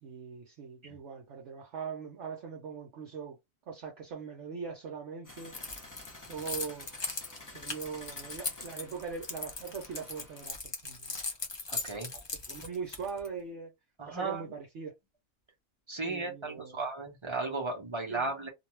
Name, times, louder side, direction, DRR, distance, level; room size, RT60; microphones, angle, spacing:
voice 1, 0.0-3.4 3.7-5.5 6.3-6.9 7.5-10.6 10.8-11.2 11.9-12.2 12.5-13.7 14.1-14.9 16.0-16.8 18.1-18.3, right 6 dB, 65° right, 0.9 m, -41 dB
sound 1, 5.2-10.5, left 2 dB, 20° left, 0.7 m, -51 dB
Keys jangling, 5.5-13.3, left 3 dB, 45° left, 0.3 m, -39 dB
voice 2, 11.7-12.1 14.0-14.5 15.9-18.5, right 3 dB, 30° right, 0.7 m, -35 dB
2.6 x 2.3 x 3.1 m
omnidirectional pair, 1.4 m